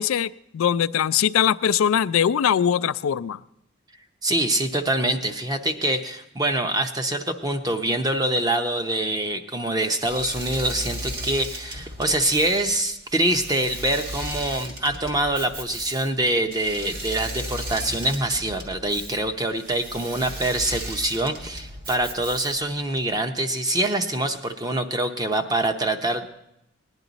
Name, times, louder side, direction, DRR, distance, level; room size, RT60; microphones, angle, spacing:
voice 1, 0.0-3.4, left 9 dB, 90° left, 17 dB, 0.4 m, -21 dB
voice 2, 4.2-26.3, right 1 dB, 20° right, 6 dB, 0.7 m, -25 dB
Engine / Mechanisms, 9.9-22.8, right 1 dB, 45° right, 1.6 m, -36 dB
18.5 x 10.5 x 4.0 m, 0.83 s
head